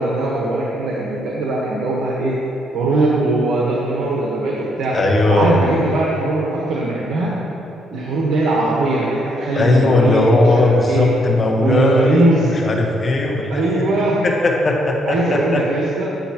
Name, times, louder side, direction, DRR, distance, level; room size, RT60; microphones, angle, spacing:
voice 1, 0.0-2.3 2.7-4.9 5.3-7.3 7.9-11.1 11.6-12.5 13.5-14.2 15.1-16.0, right 2 dB, 80° right, -5 dB, 1.1 m, -20 dB
voice 2, 4.9-5.5 9.5-12.2 12.6-13.6 14.2-15.6, left 2 dB, 35° left, 1 dB, 1.1 m, -17 dB
9.2 x 8.4 x 2.9 m, 2.8 s
cardioid pair, 90°, 0 cm